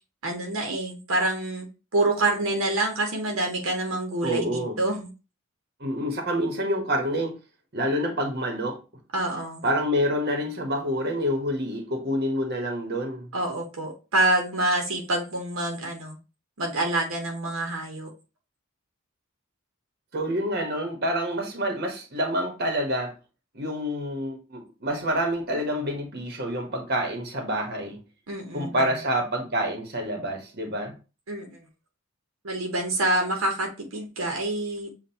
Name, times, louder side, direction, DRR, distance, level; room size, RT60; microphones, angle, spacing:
voice 1, 0.2-1.7 1.9-5.1 9.1-9.6 13.3-16.2 16.6-18.1 28.3-28.9 31.3-31.6 32.4-34.9, right 2 dB, 70° right, 1.0 m, -27 dB
voice 2, 4.2-4.8 5.8-7.4 7.7-8.8 9.6-13.3 20.1-23.1 23.5-28.0 28.5-30.9, equal, 50° right, 1.2 m, -27 dB
7.3 x 2.5 x 2.8 m
head